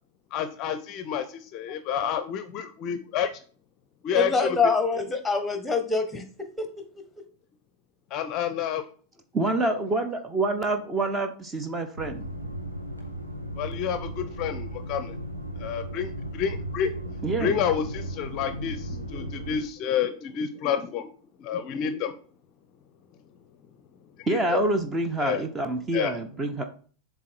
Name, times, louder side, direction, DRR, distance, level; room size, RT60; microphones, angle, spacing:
voice 1, 0.3-3.3 4.0-4.6 8.1-8.9 13.6-15.2 15.6-16.9 17.4-21.1 21.4-22.1 24.2-24.6 25.2-25.4 25.9-26.1, left 8 dB, 40° left, 10 dB, 0.6 m, -29 dB
voice 2, 4.1-6.2 6.6-6.7, left 4 dB, 5° left, 7 dB, 1.2 m, -25 dB
voice 3, 9.3-12.3 17.2-17.6 24.3-26.6, right 2 dB, 20° right, 6 dB, 0.9 m, -27 dB
sound 1, 12.0-19.6, right 1 dB, 80° right, 1.3 m, -36 dB
7.4 x 3.5 x 4.4 m, 0.42 s
figure-of-eight pair, 90°, 0 cm